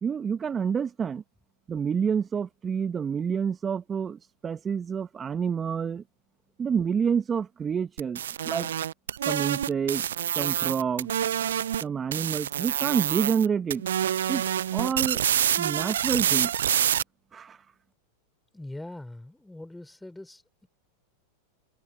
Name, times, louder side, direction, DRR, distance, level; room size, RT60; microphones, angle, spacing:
voice 1, 0.0-1.2 1.7-6.0 6.6-8.7 9.3-10.0 10.4-11.1 11.8-13.8 14.3-14.4 14.7-15.2 15.6-16.5 17.3-17.6, right 7 dB, 25° right, 1.1 m, -28 dB
sound 1, 8.0-11.8 12.1-13.5 13.7-17.0, right 10 dB, 75° right, 0.3 m, -27 dB
voice 2, 18.5-20.7, left 1 dB, 5° left, 3.2 m, -42 dB
hypercardioid pair, 95°, 0 cm